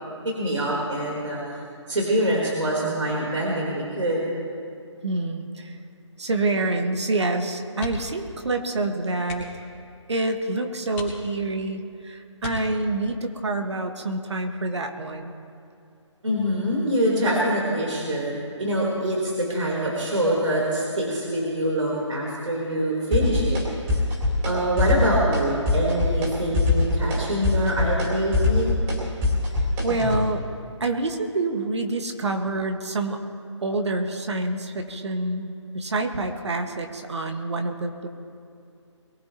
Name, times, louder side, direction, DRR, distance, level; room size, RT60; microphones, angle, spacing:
voice 1, 0.2-1.4 1.9-4.2 16.2-23.6 24.4-28.7, right 1 dB, 80° right, -4 dB, 3.8 m, -25 dB
voice 2, 5.0-5.8 6.2-9.5 10.1-15.3 29.8-30.5 30.8-33.2 33.6-38.1, right 2 dB, 65° right, 4 dB, 1.6 m, -27 dB
sound 1, 7.7-8.3 8.6-8.7 9.2-9.7 10.3-10.4 10.9-11.7 12.4-13.1 14.7-15.0 15.4-15.5, left 2 dB, 20° left, 2.7 m, -38 dB
sound 2, 23.1-23.6 23.9-24.5 24.8-25.4 25.7-26.3 26.5-30.2, left 3 dB, 20° right, 3.4 m, -22 dB
23.0 x 15.0 x 3.0 m, 2.4 s
figure-of-eight pair, 155°, 16 cm